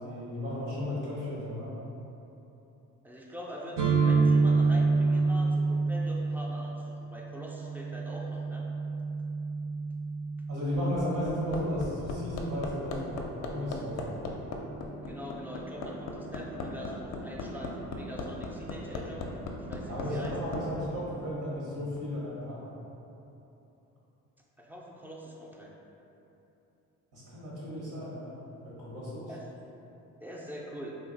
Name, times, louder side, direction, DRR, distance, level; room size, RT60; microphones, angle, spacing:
voice 1, 0.0-1.7 10.5-13.1 13.5-14.3 19.9-22.7 27.1-28.4 28.6-29.3, equal, 75° right, -7 dB, 1.0 m, -34 dB
voice 2, 3.0-8.7 15.0-19.3 19.6-20.4 24.6-25.7 29.3-29.5 30.2-31.0, equal, 5° right, -3 dB, 0.3 m, -43 dB
sound 1, 3.8-11.5, right 4 dB, 55° right, 0.6 m, -28 dB
Hammer, 10.5-20.6 22.0-22.1, left 3 dB, 55° left, 0.4 m, -37 dB
2.7 x 2.2 x 3.8 m, 3.0 s
cardioid pair, 95°, 33 cm